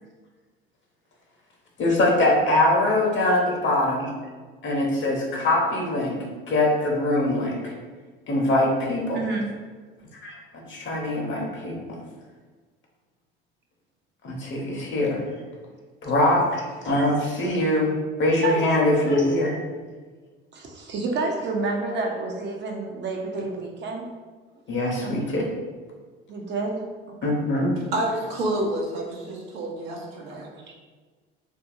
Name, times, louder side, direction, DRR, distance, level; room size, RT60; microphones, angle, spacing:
voice 1, 1.8-4.1 4.6-6.2 6.5-7.7 8.3-9.2 10.2-10.3 10.7-11.8 14.2-15.2 16.0-17.9 18.2-19.6 24.7-25.5 27.2-27.7, left 1 dB, 40° left, -1 dB, 0.9 m, -22 dB
voice 2, 9.1-9.5 18.4-18.6 20.5-24.1 25.0-25.2 26.3-27.1 30.3-30.7, right 3 dB, 40° right, 1 dB, 0.6 m, -29 dB
voice 3, 27.9-30.5, right 1 dB, 75° right, -2 dB, 0.8 m, -28 dB
2.7 x 2.6 x 2.5 m, 1.4 s
hypercardioid pair, 70°, 29 cm